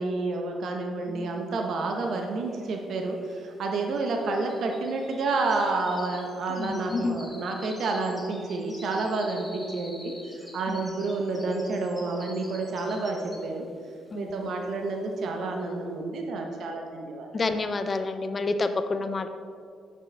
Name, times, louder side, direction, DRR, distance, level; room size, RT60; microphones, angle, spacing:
voice 1, 0.0-13.7 14.1-17.3, right 3 dB, 65° right, 2 dB, 0.7 m, -29 dB
sound 1, 2.0-2.1 2.2-13.7 14.1-14.4 14.8-14.9, left 1 dB, 10° left, 1.3 m, -48 dB
voice 2, 6.5-7.2 10.7-10.8 14.1-14.3 17.3-19.3, left 3 dB, 35° left, 9 dB, 0.5 m, -29 dB
6.5 x 6.3 x 3.3 m, 2.2 s
cardioid pair, 90°, 0 cm